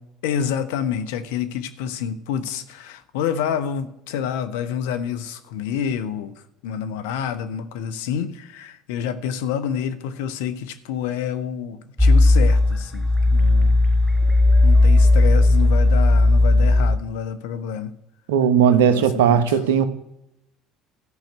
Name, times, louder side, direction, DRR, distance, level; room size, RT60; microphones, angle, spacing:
voice 1, 0.2-13.8 14.6-18.0 18.7-19.6, left 8 dB, 80° left, 1.0 m, -28 dB
sound 1, 12.0-17.0, left 2 dB, 5° right, 1.2 m, -15 dB
voice 2, 18.3-19.8, right 8 dB, 85° right, 1.1 m, -17 dB
13.0 x 5.9 x 9.4 m
hypercardioid pair, 65°, 0 cm